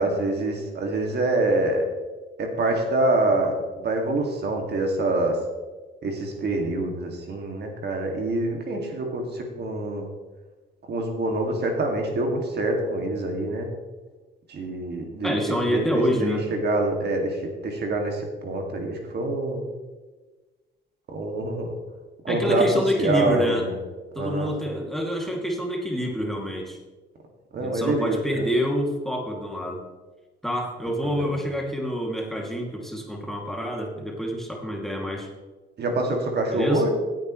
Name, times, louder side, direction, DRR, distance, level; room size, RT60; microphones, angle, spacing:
voice 1, 0.0-1.9 2.4-5.4 6.0-10.1 10.9-13.7 14.5-17.4 17.6-19.6 21.1-21.7 22.2-22.6 23.0-23.8 24.2-24.5 27.5-28.2 31.0-31.4 35.8-36.9, right 2 dB, 55° right, 2 dB, 2.2 m, -26 dB
voice 2, 15.2-16.5 22.3-23.7 24.1-26.8 27.6-29.8 30.4-35.3 36.5-36.8, equal, ahead, -1 dB, 2.5 m, -27 dB
16.0 x 9.5 x 3.2 m, 1.3 s
cardioid pair, 90°, 20 cm